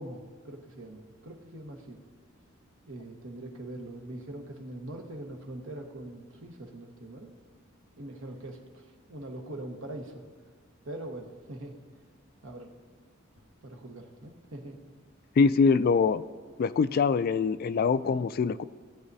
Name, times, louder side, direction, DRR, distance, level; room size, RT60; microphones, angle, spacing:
voice 1, 0.0-2.0 2.9-7.3 8.0-10.2 10.8-11.8 12.4-12.7 13.6-14.8, right 1 dB, 70° right, 2 dB, 1.3 m, -42 dB
voice 2, 15.4-16.2 16.6-18.6, left 5 dB, 45° left, 14 dB, 0.3 m, -24 dB
18.0 x 8.8 x 2.7 m, 1.5 s
head